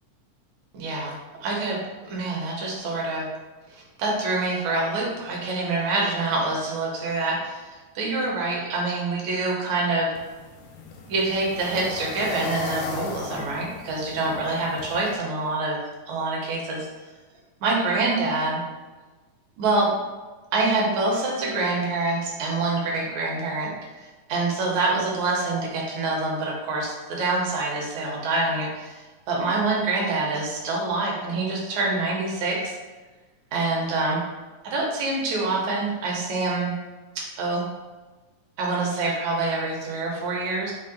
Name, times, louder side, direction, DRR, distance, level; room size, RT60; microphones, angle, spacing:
voice 1, 0.7-1.2 1.4-1.8 2.1-3.3 3.8-7.7 8.0-10.1 11.1-15.8 16.1-16.9 17.6-18.6 19.6-19.9 20.5-23.7 24.0-29.0 29.3-32.7 33.5-34.2 34.6-36.7 37.2-37.6 38.6-40.7, right 3 dB, 70° right, -2 dB, 1.9 m, -26 dB
sound 1, 10.2-15.2, left 4 dB, 85° left, 2.1 m, -37 dB
5.6 x 2.0 x 3.8 m, 1.3 s
omnidirectional pair, 3.7 m